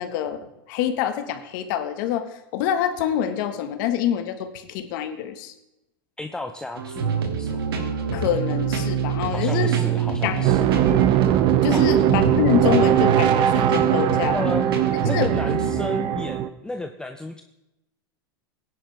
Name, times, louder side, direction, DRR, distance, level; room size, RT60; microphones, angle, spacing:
voice 1, 0.0-5.5 8.1-9.8 10.2-10.5 11.6-14.4 15.1-15.3, left 10 dB, 60° left, 8 dB, 1.4 m, -26 dB
voice 2, 6.2-7.6 9.3-10.6 11.7-12.0 14.3-14.7 15.0-17.4, left 2 dB, 5° left, 6 dB, 0.7 m, -33 dB
sound 1, 6.8-15.7, right 7 dB, 85° right, 2.1 m, -26 dB
sound 2, 10.4-16.5, right 10 dB, 45° right, 0.8 m, -20 dB
17.0 x 10.0 x 3.4 m, 0.91 s
hypercardioid pair, 115°, 12 cm